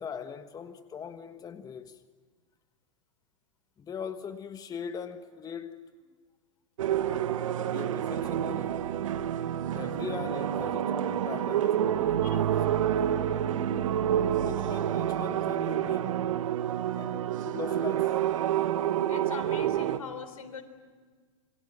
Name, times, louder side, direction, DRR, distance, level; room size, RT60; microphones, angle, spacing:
voice 1, 0.0-2.0 3.8-5.8 7.7-8.9 9.7-12.7 14.4-16.2 17.0-18.2, left 7 dB, 20° left, 1.4 m, -40 dB
sound 1, 6.8-20.0, right 10 dB, 70° right, 1.6 m, -28 dB
voice 2, 19.1-20.6, left 6 dB, 80° left, 3.7 m, -42 dB
28.0 x 24.0 x 8.7 m
hypercardioid pair, 105°, 17 cm